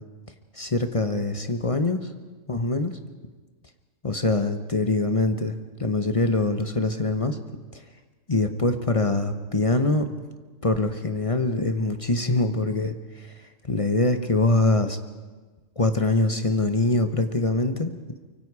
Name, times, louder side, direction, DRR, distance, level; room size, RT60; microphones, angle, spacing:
voice 1, 0.5-2.1 2.5-3.0 4.0-7.4 7.7-7.8 8.3-10.1 10.6-13.3 13.6-15.0 15.8-17.9, left 2 dB, 25° left, 8 dB, 1.0 m, -24 dB
24.5 x 24.0 x 4.9 m, 1.3 s
omnidirectional pair, 1.4 m